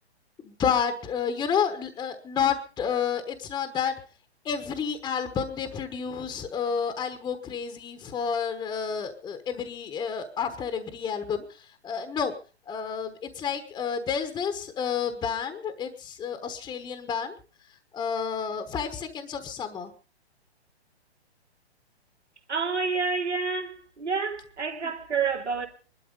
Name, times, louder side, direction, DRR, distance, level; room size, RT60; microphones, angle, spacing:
voice 1, 0.4-3.9 4.4-12.3 12.7-17.3 17.9-19.9 24.8-24.9, left 7 dB, 10° left, 1.1 m, -30 dB
voice 2, 22.5-25.7, right 5 dB, 85° right, 3.2 m, -28 dB
20.5 x 12.5 x 5.2 m
hypercardioid pair, 130°, 33 cm